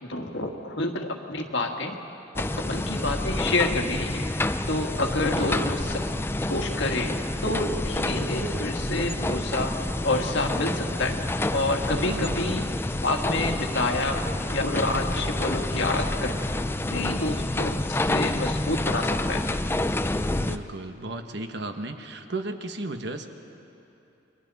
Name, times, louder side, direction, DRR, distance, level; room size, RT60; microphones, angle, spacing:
voice 1, 0.0-1.9 2.6-4.3 4.7-6.0 6.4-9.8 10.0-11.2 11.5-12.7 13.0-16.4 16.9-19.5, left 2 dB, 70° left, 2 dB, 1.7 m, -28 dB
sound 1, 2.4-20.6, left 1 dB, 10° left, 0.4 m, -28 dB
voice 2, 5.4-5.8 12.0-12.5 20.4-23.3, right 2 dB, 60° right, 6 dB, 1.2 m, -35 dB
30.0 x 23.0 x 4.1 m, 2.8 s
head